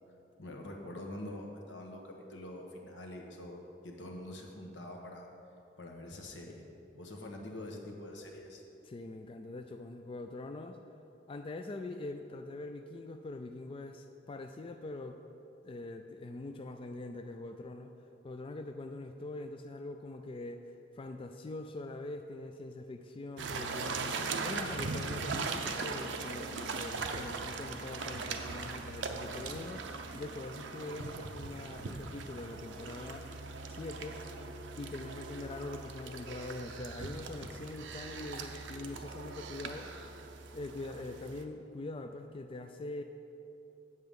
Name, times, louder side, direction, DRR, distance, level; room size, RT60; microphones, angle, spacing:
voice 1, 0.4-5.3 5.8-6.7 6.9-8.6, left 1 dB, 80° left, 1 dB, 1.2 m, -45 dB
voice 2, 8.8-10.8 11.3-15.2 15.6-17.9 18.2-29.9 30.1-33.3 33.7-34.2 34.8-39.9 40.5-43.0, left 2 dB, 30° left, 6 dB, 0.3 m, -43 dB
sound 1, 23.4-41.4, right 4 dB, 80° right, 0.7 m, -40 dB
8.1 x 7.5 x 5.3 m, 2.8 s
head